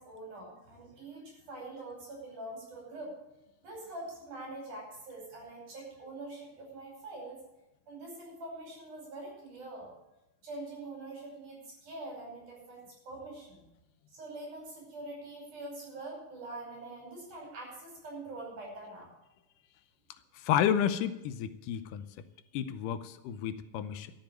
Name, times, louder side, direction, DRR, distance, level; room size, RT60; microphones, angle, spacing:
voice 1, 0.0-3.2 3.6-7.4 7.9-9.9 10.4-13.6 14.1-19.1, right 2 dB, 65° right, -1 dB, 6.9 m, -44 dB
voice 2, 20.3-22.0 22.5-24.1, left 9 dB, 90° left, 12 dB, 2.3 m, -31 dB
13.0 x 6.9 x 8.9 m, 0.94 s
omnidirectional pair, 3.8 m